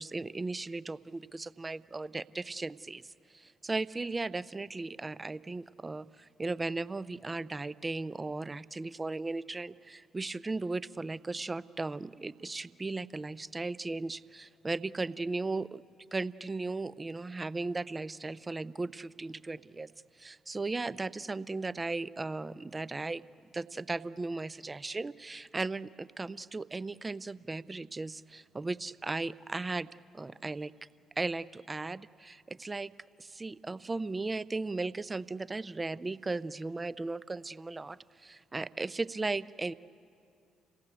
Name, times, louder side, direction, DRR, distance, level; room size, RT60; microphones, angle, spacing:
voice 1, 0.0-15.8 16.1-19.9 20.2-23.2 23.5-29.9 30.1-30.7 31.2-32.9 33.2-39.7, right 3 dB, 25° right, 18 dB, 0.5 m, -36 dB
27.5 x 18.0 x 8.1 m, 2.4 s
figure-of-eight pair, 45°, 0 cm